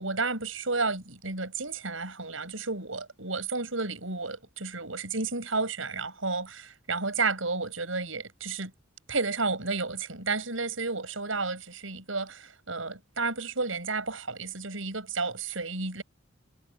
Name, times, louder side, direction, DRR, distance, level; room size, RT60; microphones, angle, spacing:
voice 1, 0.0-8.7 9.1-16.0, right 3 dB, 80° right, 6.7 m, -32 dB
head